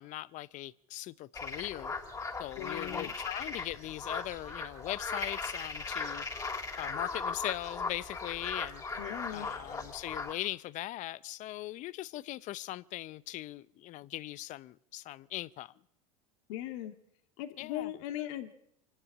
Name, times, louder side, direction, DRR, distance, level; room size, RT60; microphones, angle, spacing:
voice 1, 0.0-1.9 2.4-6.3 6.8-8.8 9.3-15.7 17.6-17.9, left 16 dB, 45° left, 0.7 m, -40 dB
sound 1, 1.3-10.3, left 4 dB, 20° left, 3.2 m, -38 dB
voice 2, 2.5-3.1 9.0-9.5 16.5-16.9 17.4-18.5, left 13 dB, 65° left, 2.4 m, -39 dB
25.5 x 12.5 x 8.6 m
hypercardioid pair, 95°, 18 cm